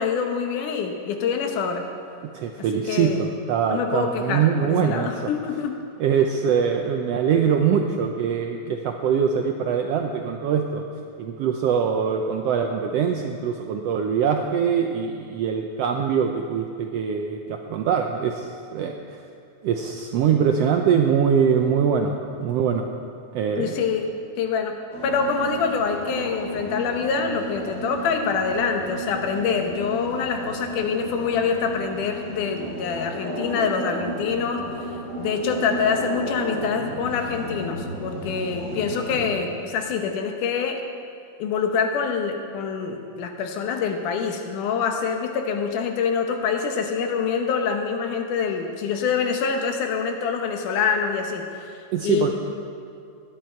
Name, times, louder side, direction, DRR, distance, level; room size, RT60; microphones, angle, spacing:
voice 1, 0.0-1.9 2.7-3.3 3.7-5.8 23.6-24.7 25.0-34.7 35.2-40.8 41.4-51.8 52.0-52.3, left 6 dB, 85° left, 4 dB, 2.6 m, -25 dB
voice 2, 2.3-5.3 6.0-10.8 11.2-19.2 19.6-22.9 23.3-23.8 51.9-52.3, right 7 dB, 90° right, 3 dB, 1.4 m, -23 dB
sound 1, 24.9-39.3, equal, 65° left, 5.3 m, -33 dB
16.5 x 10.5 x 4.5 m, 2.4 s
omnidirectional pair, 3.6 m